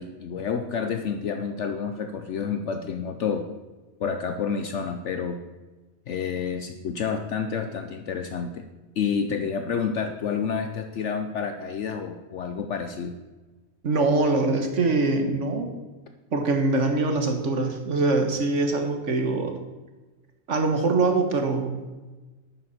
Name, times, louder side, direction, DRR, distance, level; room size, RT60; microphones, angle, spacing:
voice 1, 0.0-3.4 4.0-5.4 6.1-8.7 9.0-13.2, left 6 dB, 65° left, 6 dB, 1.0 m, -29 dB
voice 2, 13.8-15.7 16.3-19.5 20.5-21.9, right 3 dB, 60° right, 5 dB, 1.7 m, -23 dB
11.5 x 9.1 x 4.3 m, 1.2 s
omnidirectional pair, 1.4 m